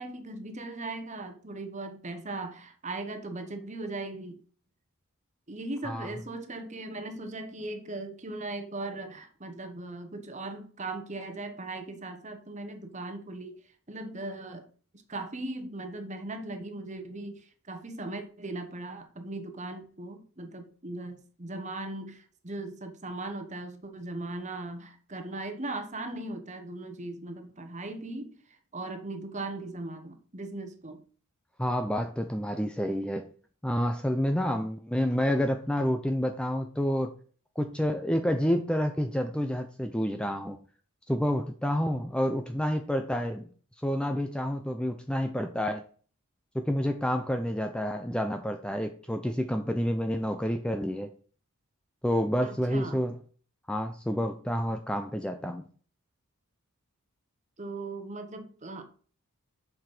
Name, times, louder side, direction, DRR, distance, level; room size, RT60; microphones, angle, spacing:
voice 1, 0.0-4.4 5.5-13.6 13.9-14.7 15.1-31.0 52.4-53.0 57.6-58.8, right 2 dB, 30° right, 7 dB, 1.2 m, -38 dB
voice 2, 31.6-33.3 33.6-37.1 37.6-40.6 41.1-43.4 43.8-45.8 46.5-51.1 52.0-53.1 53.7-55.6, equal, 5° left, 6 dB, 0.5 m, -29 dB
7.2 x 6.0 x 4.9 m, 0.43 s
head